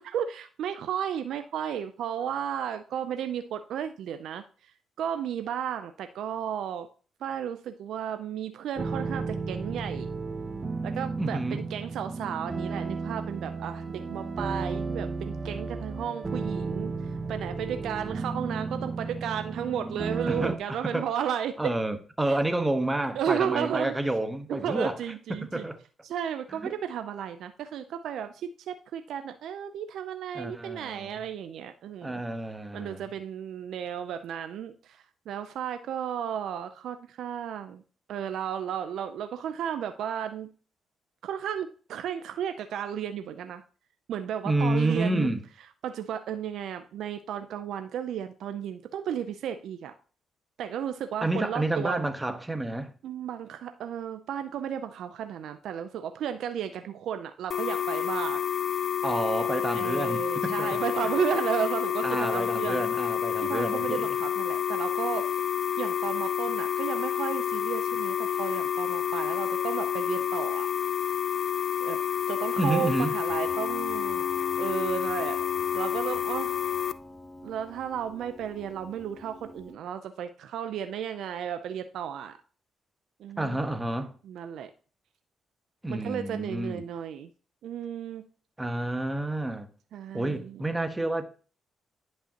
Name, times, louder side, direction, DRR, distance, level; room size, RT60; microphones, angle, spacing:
voice 1, 0.0-6.9 7.2-10.1 10.8-21.5 22.3-22.4 23.2-23.9 24.5-25.7 26.0-32.2 32.7-37.8 38.1-40.5 41.2-43.6 44.1-45.3 45.8-49.9 50.6-52.0 53.0-58.4 59.7-62.9 63.4-65.3 65.8-70.7 71.8-72.0 72.3-74.2 74.6-75.4 75.7-76.6 77.4-82.4 83.2-83.6 84.2-84.7 85.9-87.3 87.6-88.2 89.9-90.6, right 9 dB, 75° right, 0.5 m, -34 dB
sound 1, 8.8-20.6, right 4 dB, 35° right, 1.0 m, -33 dB
voice 2, 11.2-11.6 20.3-21.1 21.6-25.0 25.3-25.8 26.6-26.7 30.3-31.2 32.0-33.0 44.4-45.4 51.2-52.9 59.0-60.8 62.0-64.2 72.6-73.2 83.4-84.1 85.8-86.8 88.6-89.7 90.1-91.3, right 2 dB, 15° right, 1.3 m, -29 dB
sound 2, 57.5-76.9, left 8 dB, 60° left, 0.4 m, -29 dB
Piano, 73.3-79.7, left 1 dB, 25° left, 1.7 m, -44 dB
10.0 x 5.5 x 2.9 m
supercardioid pair, 60°, 0 cm